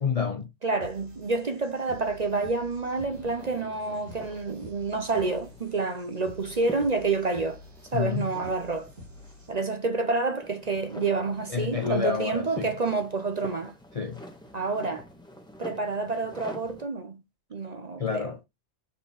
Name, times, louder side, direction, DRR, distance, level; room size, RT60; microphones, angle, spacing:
voice 1, 0.0-0.5 7.9-8.3 11.5-12.8 13.9-14.2 18.0-18.5, left 6 dB, 45° left, 0.4 m, -29 dB
voice 2, 0.6-7.6 7.9-8.9 9.5-13.7 14.5-15.0 15.6-17.2 17.5-18.3, right 3 dB, 40° right, 0.7 m, -28 dB
sound 1, 0.8-9.8, left 1 dB, 55° right, 2.5 m, -48 dB
sound 2, 3.0-16.8, left 1 dB, 5° left, 1.3 m, -47 dB
5.3 x 4.4 x 4.8 m
omnidirectional pair, 1.3 m